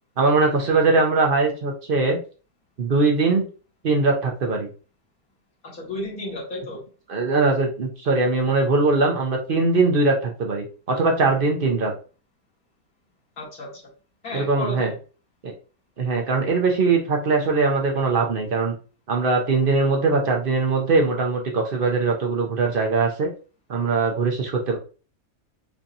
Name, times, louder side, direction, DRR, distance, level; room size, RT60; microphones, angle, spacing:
voice 1, 0.2-2.2 2.8-3.5 3.8-4.7 7.1-11.9 14.3-14.9 16.0-18.7 19.1-23.3 23.7-24.8, right 3 dB, 45° right, 1 dB, 0.8 m, -21 dB
voice 2, 5.7-6.8 13.4-13.8 14.2-14.9, left 2 dB, 75° left, -4 dB, 2.1 m, -33 dB
4.6 x 2.8 x 2.5 m, 0.36 s
omnidirectional pair, 1.5 m